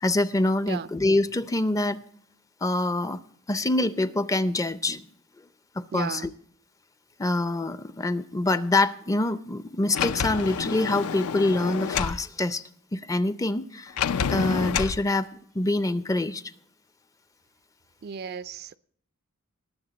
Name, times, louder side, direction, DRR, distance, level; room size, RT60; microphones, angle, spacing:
voice 1, 0.0-2.0 2.6-3.2 3.5-5.1 5.8-6.3 7.2-12.6 12.9-14.0 14.3-15.3 15.5-16.4, left 2 dB, 15° left, 0.4 m, -25 dB
voice 2, 5.9-6.3 18.0-18.8, right 7 dB, 45° right, 0.4 m, -34 dB
Sliding door, 9.9-12.2 14.0-15.0, left 7 dB, 75° left, 0.5 m, -28 dB
19.5 x 7.3 x 4.0 m
head